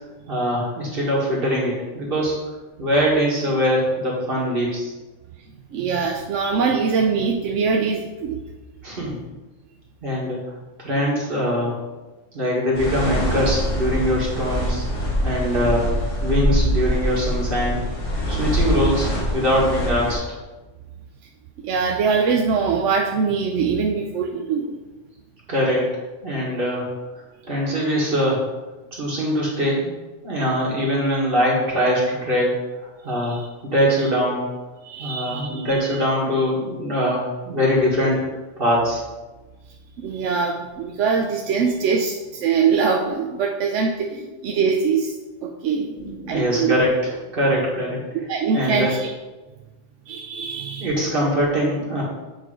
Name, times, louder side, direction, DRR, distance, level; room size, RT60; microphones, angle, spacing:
voice 1, 0.3-2.3 2.8-4.9 8.8-9.1 10.0-10.4 10.8-11.8 12.3-14.8 15.2-15.9 16.2-17.8 18.3-20.2 25.5-25.9 26.2-26.9 27.4-28.5 28.9-29.9 30.2-32.5 33.0-34.5 35.0-38.3 38.6-39.0 44.1-44.2 45.8-48.0 48.5-48.9 50.8-52.0, equal, 45° right, -4 dB, 1.9 m, -22 dB
voice 2, 5.7-8.4 21.6-24.8 33.2-33.4 34.8-36.0 40.0-45.1 45.4-45.9 46.3-46.7 48.1-49.1 50.1-50.9, right 5 dB, 75° right, 2 dB, 0.9 m, -23 dB
sound 1, 12.7-20.2, equal, 75° left, 2.9 m, -24 dB
8.3 x 3.4 x 4.9 m, 1.2 s
omnidirectional pair, 1.3 m